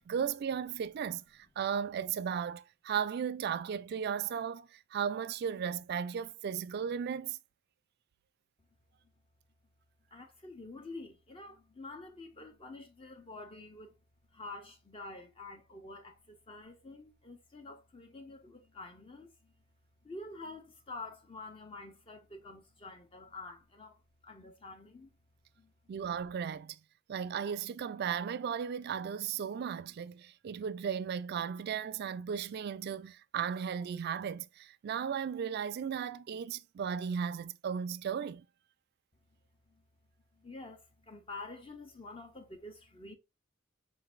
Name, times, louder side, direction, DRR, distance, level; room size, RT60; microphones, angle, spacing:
voice 1, 0.0-7.4 25.9-26.8 27.1-38.4, right 7 dB, 55° right, 0.3 m, -36 dB
voice 2, 10.1-13.9 14.3-19.5 20.0-25.1 25.6-25.7 39.7-39.8 40.3-43.1, left 2 dB, 25° left, 0.6 m, -48 dB
5.0 x 3.8 x 2.4 m
head